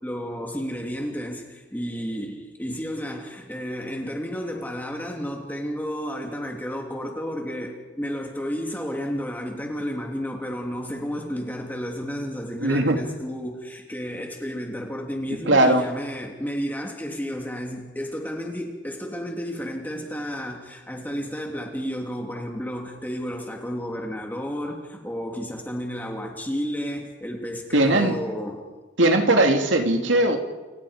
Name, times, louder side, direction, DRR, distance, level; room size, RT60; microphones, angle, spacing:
voice 1, 0.0-28.7 29.3-29.4, equal, 10° left, 0 dB, 2.8 m, -32 dB
voice 2, 12.6-13.0 15.5-15.9 27.7-28.2 29.0-30.4, right 1 dB, 85° right, 4 dB, 2.9 m, -19 dB
29.5 x 26.5 x 5.2 m, 1.3 s
head